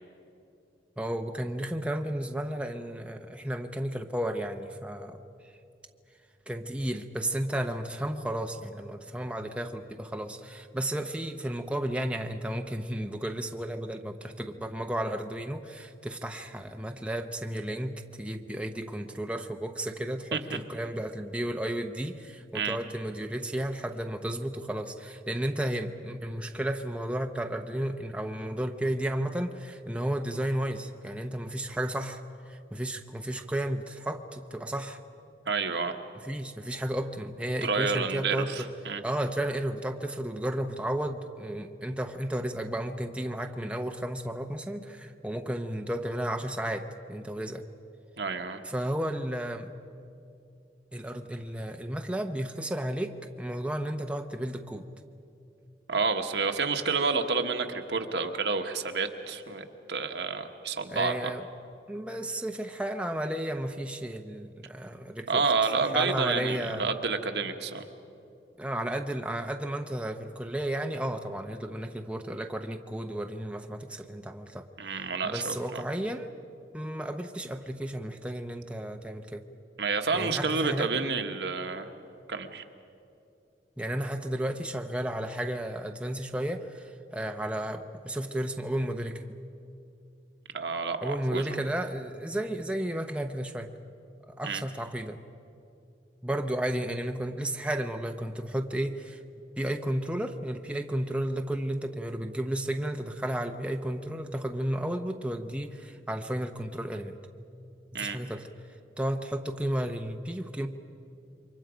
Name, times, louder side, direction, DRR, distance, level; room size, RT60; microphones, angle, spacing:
voice 1, 1.0-5.2 6.5-35.0 36.2-38.7 39.0-47.7 48.6-49.7 50.9-54.9 60.9-61.4 61.9-65.4 65.8-66.9 68.6-74.7 75.2-76.3 76.7-79.5 80.1-81.0 83.8-89.3 91.0-93.7 94.3-95.2 96.2-99.2 99.6-107.2 107.9-108.5 109.0-110.7, right 1 dB, 5° right, 4 dB, 0.7 m, -33 dB
voice 2, 35.5-36.0 37.6-39.0 48.2-48.6 55.9-61.3 65.3-67.8 74.8-75.8 79.8-81.9 82.3-82.6 90.5-91.4 94.4-94.6 107.9-108.2, right 4 dB, 75° right, 5 dB, 1.3 m, -29 dB
28.5 x 24.0 x 5.1 m, 2.6 s
head